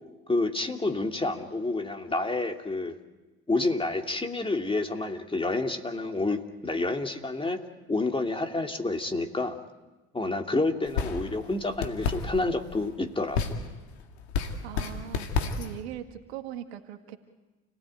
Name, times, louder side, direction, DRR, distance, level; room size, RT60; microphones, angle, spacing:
voice 1, 0.3-3.0 3.5-7.6 7.9-9.6 10.1-13.6, left 2 dB, 15° left, 4 dB, 2.8 m, -29 dB
sound 1, 10.9-15.8, left 5 dB, 80° left, 2.0 m, -32 dB
voice 2, 14.6-17.2, right 11 dB, 80° right, 7 dB, 1.9 m, -40 dB
29.5 x 18.0 x 9.3 m, 1.2 s
hypercardioid pair, 60°, 32 cm